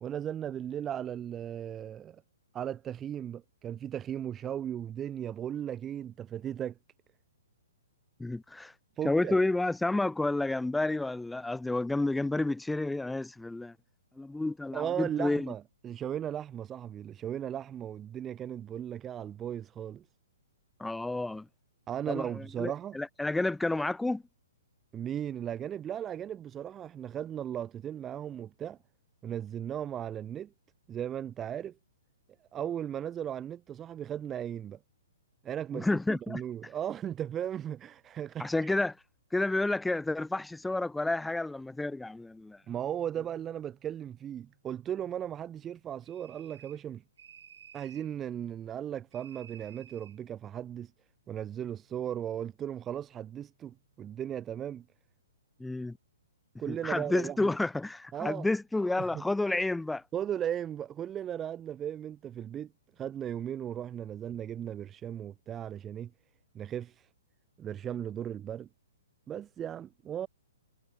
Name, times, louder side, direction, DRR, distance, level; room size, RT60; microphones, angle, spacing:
voice 1, 0.0-2.2 2.5-6.8 9.0-9.4 14.7-20.0 21.9-23.0 24.9-28.8 29.2-30.5 30.9-31.7 32.5-34.8 35.4-38.7 42.7-47.0 47.7-50.9 51.3-54.8 56.6-57.5 58.1-58.5 59.0-59.2 60.1-62.7 63.0-66.1 66.5-67.1 67.6-68.7 69.3-70.3, right 10 dB, 20° right, 0.8 m, -36 dB
voice 2, 8.2-8.7 9.0-13.7 14.2-15.5 20.8-21.5 22.1-24.2 35.7-36.4 38.4-39.0 39.3-42.6 55.6-56.0 56.7-60.0, left 2 dB, 5° left, 0.5 m, -30 dB
sound 1, 46.0-46.9 47.2-48.1 49.1-50.2, right 8 dB, 60° right, 1.7 m, -54 dB
figure-of-eight pair, 120°, 0 cm